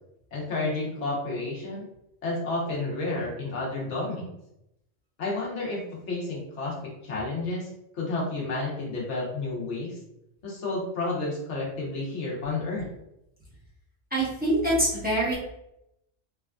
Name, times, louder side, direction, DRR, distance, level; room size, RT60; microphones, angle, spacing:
voice 1, 0.3-1.8 2.2-4.3 5.2-7.7 7.9-10.0 10.4-12.9, left 2 dB, 85° left, -3 dB, 1.2 m, -31 dB
voice 2, 14.1-15.4, right 1 dB, 10° right, -8 dB, 0.8 m, -24 dB
3.1 x 2.4 x 2.2 m, 0.83 s
omnidirectional pair, 1.2 m